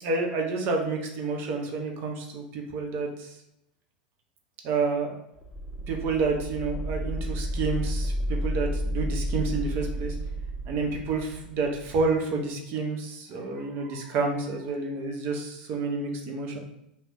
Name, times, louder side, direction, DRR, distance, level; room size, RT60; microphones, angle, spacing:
voice 1, 0.0-3.4 4.6-5.2 5.9-10.2 10.7-16.6, right 4 dB, 45° right, 2 dB, 0.7 m, -29 dB
sound 1, 5.4-12.0, equal, 5° left, 0.4 m, -31 dB
2.4 x 2.1 x 3.5 m, 0.82 s
hypercardioid pair, 90°, 5 cm